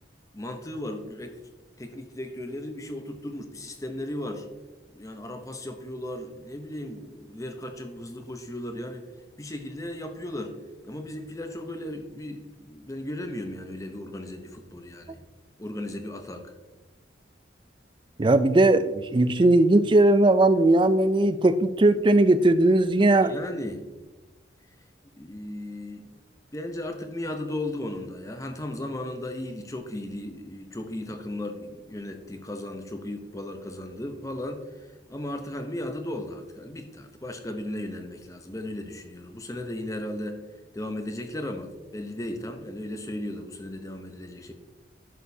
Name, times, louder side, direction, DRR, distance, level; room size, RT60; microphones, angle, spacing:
voice 1, 0.3-1.4 1.8-4.5 4.9-9.1 9.4-10.6 10.8-15.2 15.6-16.5 22.9-23.8 25.2-26.1 26.5-40.4 40.7-44.5, left 1 dB, 15° left, 6 dB, 0.7 m, -36 dB
voice 2, 18.2-23.3, right 2 dB, 25° right, 12 dB, 0.3 m, -19 dB
11.0 x 6.7 x 2.7 m, 1.2 s
head